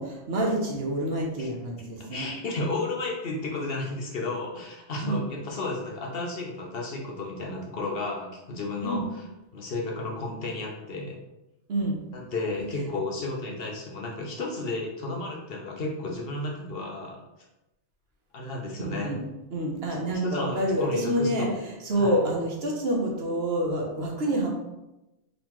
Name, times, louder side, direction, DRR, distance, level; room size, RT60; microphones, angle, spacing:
voice 1, 0.0-2.3 5.0-5.2 8.8-9.1 11.7-12.0 18.8-19.2 19.5-21.5 21.8-24.5, right 1 dB, 60° right, -1 dB, 1.1 m, -27 dB
voice 2, 2.0-9.2 9.5-11.2 12.1-17.2 18.3-19.1 20.2-21.5 22.0-22.2, left 2 dB, 55° left, -1 dB, 0.9 m, -33 dB
3.9 x 3.8 x 3.0 m, 0.96 s
omnidirectional pair, 1.2 m